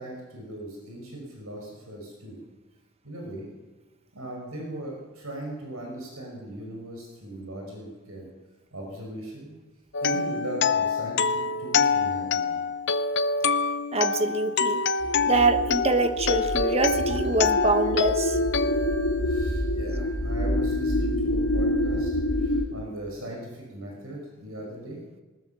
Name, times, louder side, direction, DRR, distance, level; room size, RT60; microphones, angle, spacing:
voice 1, 0.0-2.4 3.0-3.5 4.1-8.3 8.7-9.5 10.0-12.6 19.2-22.1 22.4-25.0, right 1 dB, 75° right, 0 dB, 5.7 m, -38 dB
sound 1, 9.9-19.8, left 5 dB, 50° left, 0.6 m, -26 dB
voice 2, 13.9-14.8 15.3-18.4, right 3 dB, 30° right, 9 dB, 1.1 m, -25 dB
sound 2, 15.0-22.7, left 1 dB, 85° left, 2.6 m, -27 dB
19.5 x 19.5 x 7.1 m, 1.2 s
head